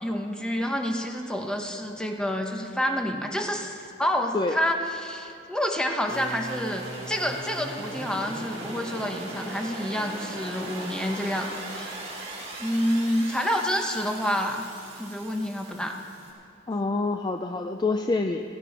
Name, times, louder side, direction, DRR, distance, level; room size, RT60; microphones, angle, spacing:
voice 1, 0.0-11.9 12.6-14.7 15.0-16.0, equal, 5° left, 3 dB, 1.0 m, -28 dB
sound 1, 6.0-16.3, right 1 dB, 35° right, 3.2 m, -38 dB
voice 2, 16.7-18.5, left 3 dB, 25° left, 6 dB, 0.4 m, -27 dB
16.0 x 15.0 x 4.2 m, 2.7 s
head